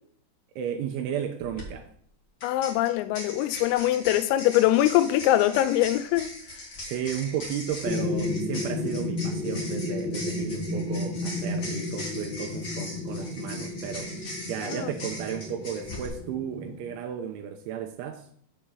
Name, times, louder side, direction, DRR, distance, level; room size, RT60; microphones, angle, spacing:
voice 1, 0.6-1.9 6.8-14.1 14.5-18.3, right 9 dB, 85° right, 2.8 m, -34 dB
sound 1, 1.4-1.6 2.4-16.1, left 1 dB, 60° left, 1.2 m, -40 dB
voice 2, 2.4-6.3 14.7-14.9, left 14 dB, 90° left, 3.2 m, -23 dB
sound 2, 7.8-16.9, left 2 dB, 35° right, 0.5 m, -32 dB
7.5 x 4.5 x 6.8 m
omnidirectional pair, 5.8 m